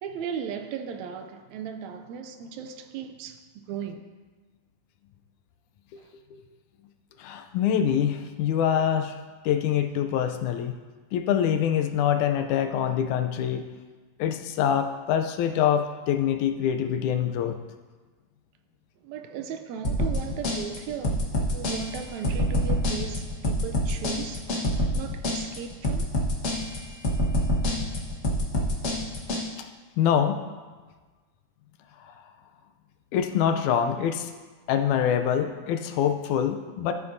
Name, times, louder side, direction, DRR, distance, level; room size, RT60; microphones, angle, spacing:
voice 1, 0.0-4.1 6.0-6.1 19.0-24.5 24.9-26.2, right 8 dB, 80° right, 1.8 m, -37 dB
voice 2, 7.2-9.2 9.4-10.8 11.1-13.6 14.2-17.6 30.0-30.4 33.1-34.3 34.7-36.9, left 9 dB, 85° left, 2.0 m, -25 dB
sound 1, 19.8-29.4, left 1 dB, 50° left, 0.9 m, -26 dB
13.5 x 7.7 x 2.6 m
omnidirectional pair, 3.4 m